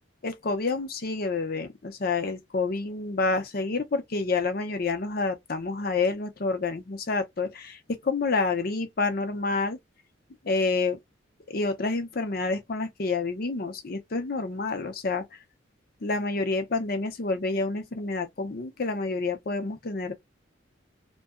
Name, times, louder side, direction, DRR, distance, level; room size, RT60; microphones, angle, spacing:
voice 1, 0.2-9.8 10.4-11.0 11.5-15.2 16.0-20.1, left 3 dB, 50° left, 0.7 m, -28 dB
2.7 x 2.2 x 2.4 m
head